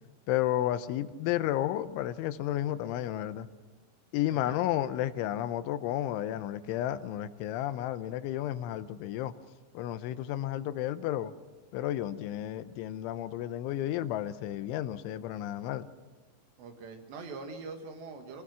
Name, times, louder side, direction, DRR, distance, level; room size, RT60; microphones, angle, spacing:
voice 1, 0.3-3.5 4.1-9.3 9.7-11.3 11.7-15.9, left 13 dB, 85° left, 12 dB, 3.2 m, -32 dB
voice 2, 4.3-4.6 16.6-18.4, right 4 dB, 70° right, 5 dB, 3.9 m, -43 dB
26.5 x 19.0 x 6.2 m, 1.2 s
omnidirectional pair, 5.4 m